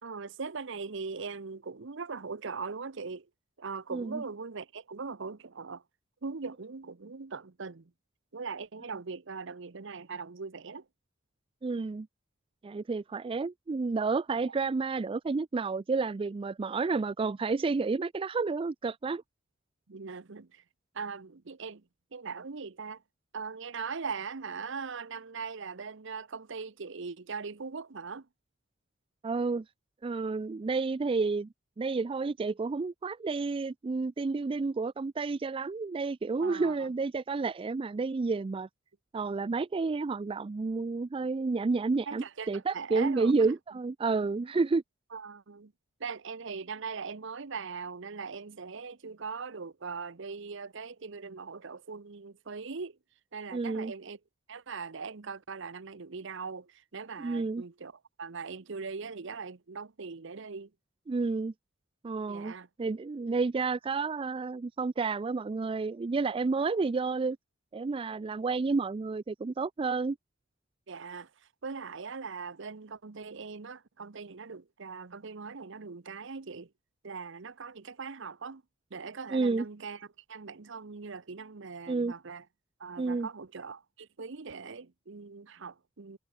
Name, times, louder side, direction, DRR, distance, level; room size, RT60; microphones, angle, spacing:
voice 1, 0.0-3.3 3.6-5.8 6.2-7.9 8.3-10.8 19.9-20.6 20.9-21.8 22.1-23.0 23.3-28.3 36.4-36.9 42.1-43.5 45.1-45.7 46.0-53.0 53.3-54.2 54.5-57.9 58.2-60.7 62.3-62.7 70.9-71.3 71.6-76.7 77.0-78.6 78.9-82.4 82.8-86.2, right 5 dB, 65° right, 0.8 m, -40 dB
voice 2, 3.9-4.2 11.6-12.1 12.6-19.2 29.2-29.6 30.0-31.5 31.8-38.7 39.1-44.8 53.5-53.9 57.2-57.6 61.1-61.5 62.0-62.5 62.8-67.4 67.7-70.2 79.3-79.7 81.9-82.1 83.0-83.3, right 4 dB, 25° right, 0.3 m, -30 dB
head